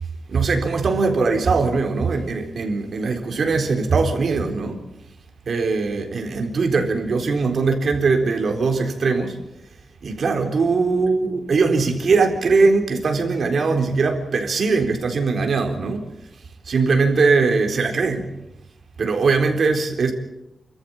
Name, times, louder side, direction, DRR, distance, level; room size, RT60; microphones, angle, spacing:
voice 1, 0.3-4.8 5.5-9.4 10.0-16.0 16.7-18.3 19.0-20.1, right 4 dB, 60° right, 4.0 m, -20 dB
29.5 x 14.0 x 8.9 m
wide cardioid pair, 145°, 0 cm